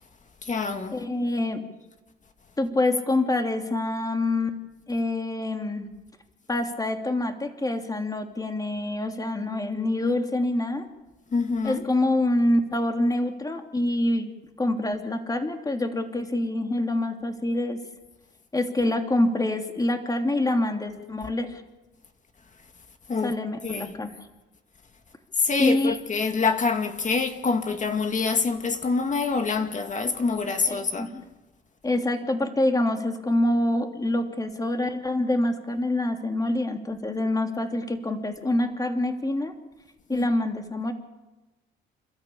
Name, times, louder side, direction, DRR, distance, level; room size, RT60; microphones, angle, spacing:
voice 1, 0.4-1.0 11.3-11.8 23.1-23.3 23.6-23.9 25.4-31.1 40.1-40.3, left 4 dB, 40° left, 2.2 m, -26 dB
voice 2, 0.9-1.6 2.6-4.6 4.9-5.9 6.5-10.9 11.6-14.3 14.6-17.8 18.5-21.6 23.2-24.1 25.6-26.0 30.6-31.2 31.8-39.5 40.1-40.9, left 1 dB, 20° left, 2.9 m, -26 dB
28.5 x 13.5 x 8.7 m
cardioid pair, 90°, 20 cm